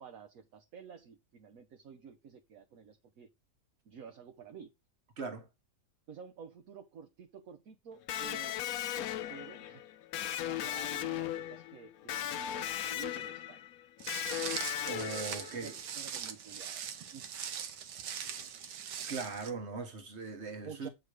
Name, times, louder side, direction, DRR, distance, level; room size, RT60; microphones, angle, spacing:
voice 1, 0.0-3.3 3.8-4.7 6.1-8.5 9.0-9.8 10.4-13.6 15.3-17.3 19.7-19.8 20.6-20.9, right 6 dB, 60° right, 1.2 m, -51 dB
voice 2, 5.2-5.5 14.8-15.7 19.1-20.9, right 4 dB, 40° right, 1.6 m, -40 dB
Electric guitar, 8.1-15.8, left 11 dB, 70° left, 1.0 m, -37 dB
Walk footsteps, 14.0-19.5, right 8 dB, 85° right, 1.6 m, -41 dB
8.7 x 3.7 x 4.7 m
omnidirectional pair, 1.8 m